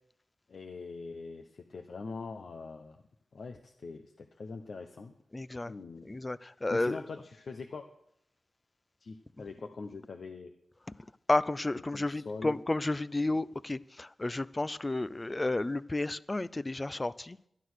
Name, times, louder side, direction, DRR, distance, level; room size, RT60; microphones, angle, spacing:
voice 1, 0.5-3.0 3.3-5.1 5.7-6.1 6.7-7.9 9.0-10.5 11.9-12.6, left 4 dB, 75° left, 1.0 m, -43 dB
voice 2, 5.3-5.7 6.0-7.0 11.3-17.5, left 2 dB, 30° left, 0.5 m, -32 dB
11.5 x 11.5 x 6.3 m
cardioid pair, 60°, 0 cm